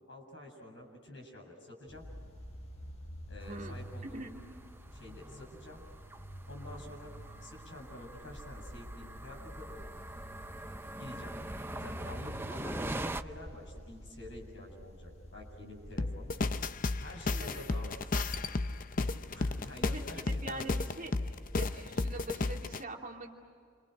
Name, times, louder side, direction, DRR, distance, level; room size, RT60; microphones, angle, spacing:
voice 1, 0.1-2.0 3.3-4.2 4.9-5.8 6.5-7.1 7.4-9.7 11.0-11.3 11.8-16.3 17.0-18.2 19.3-20.7, left 1 dB, 60° left, 0 dB, 7.7 m, -48 dB
sound 1, 1.9-21.5, equal, 80° left, 5.7 m, -49 dB
sound 2, 3.4-13.2, right 1 dB, 10° right, 0.6 m, -44 dB
voice 2, 3.4-3.8 4.1-4.3 17.4-17.6 19.8-21.1 21.5-23.4, right 2 dB, 40° right, -1 dB, 2.8 m, -44 dB
sound 3, 16.0-22.8, left 3 dB, 40° left, 0.6 m, -33 dB
29.0 x 27.0 x 6.6 m, 2.3 s
head